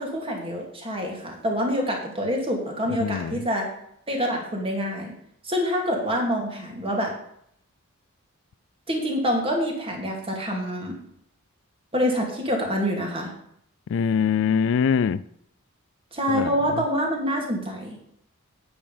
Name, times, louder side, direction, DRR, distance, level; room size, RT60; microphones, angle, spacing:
voice 1, 0.0-3.7 4.1-5.1 5.4-7.1 8.9-11.0 11.9-13.3 16.1-18.0, equal, 25° right, 2.6 m, -26 dB
voice 2, 2.9-3.4 13.9-15.2 16.3-16.8, left 7 dB, 60° left, 0.3 m, -24 dB
8.9 x 8.8 x 5.2 m
head